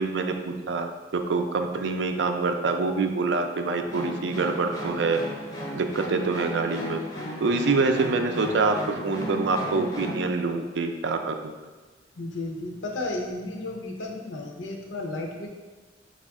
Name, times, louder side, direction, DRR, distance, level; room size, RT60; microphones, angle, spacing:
voice 1, 0.0-5.2 5.7-7.0 7.4-11.6, right 3 dB, 70° right, 6 dB, 0.4 m, -26 dB
sound 1, 3.9-10.3, equal, 20° left, 0.5 m, -36 dB
voice 2, 12.2-15.5, left 2 dB, 80° left, 2 dB, 0.6 m, -33 dB
5.1 x 2.4 x 3.5 m, 1.3 s
head